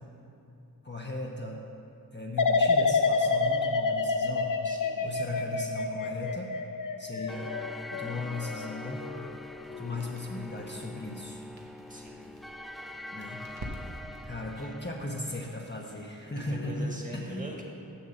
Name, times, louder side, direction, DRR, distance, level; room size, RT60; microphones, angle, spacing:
voice 1, 0.8-1.6 2.1-4.5 5.0-6.5 7.0-7.5 7.9-9.1 9.8-11.4 13.1-13.4 14.2-17.5, left 2 dB, 30° left, -1 dB, 1.0 m, -37 dB
sound 1, 2.4-9.3 9.7-10.2, left 4 dB, 55° left, 0.6 m, -28 dB
voice 2, 4.6-5.1 11.9-12.3 14.6-14.7 16.4-17.6, equal, 20° right, -1 dB, 1.7 m, -43 dB
sound 2, 7.3-16.1, left 1 dB, ahead, 0.4 m, -44 dB
Crackle, 9.0-14.3, right 1 dB, 80° right, 1.2 m, -48 dB
7.2 x 7.2 x 6.5 m, 2.8 s
wide cardioid pair, 50°, 38 cm